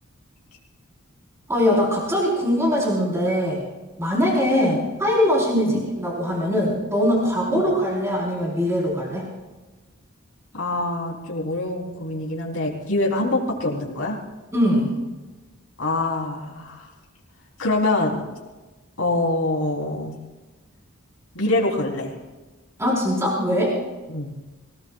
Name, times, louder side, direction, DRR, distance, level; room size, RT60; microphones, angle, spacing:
voice 1, 1.5-3.6 4.0-9.3 14.5-14.9 22.8-23.7, equal, 15° right, -4 dB, 4.3 m, -21 dB
voice 2, 4.5-4.8 5.5-5.7 7.5-7.6 10.5-14.2 15.8-16.9 17.6-18.2 19.0-20.2 21.3-22.2 24.1-24.4, left 2 dB, 70° left, -2 dB, 3.6 m, -25 dB
24.5 x 17.5 x 2.4 m, 1.2 s
head